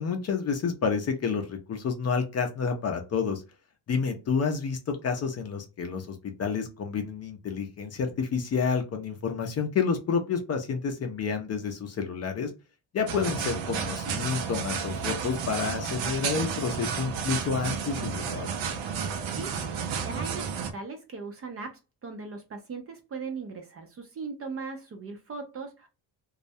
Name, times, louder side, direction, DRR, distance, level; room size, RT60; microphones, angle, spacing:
voice 1, 0.0-3.4 3.9-12.5 12.9-18.5, left 5 dB, 35° left, 4 dB, 0.5 m, -29 dB
sound 1, 13.1-20.7, right 6 dB, 90° right, 0.6 m, -32 dB
voice 2, 20.0-25.9, right 4 dB, 35° right, 5 dB, 0.4 m, -39 dB
2.3 x 2.0 x 2.6 m, 0.29 s
cardioid pair, 150°, 45 cm